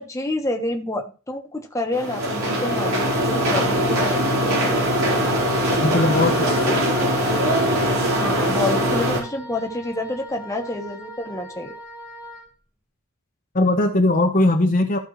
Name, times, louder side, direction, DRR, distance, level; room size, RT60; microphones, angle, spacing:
voice 1, 0.0-4.9 8.2-11.7, left 1 dB, 15° left, 2 dB, 1.2 m, -28 dB
sound 1, 1.9-9.2, equal, 80° right, 4.1 m, -21 dB
voice 2, 5.8-7.0 13.5-15.0, left 2 dB, 40° left, 3 dB, 1.0 m, -20 dB
Wind instrument woodwind instrument, 6.0-12.5, equal, 10° right, 1.9 m, -39 dB
14.5 x 5.3 x 3.2 m, 0.34 s
head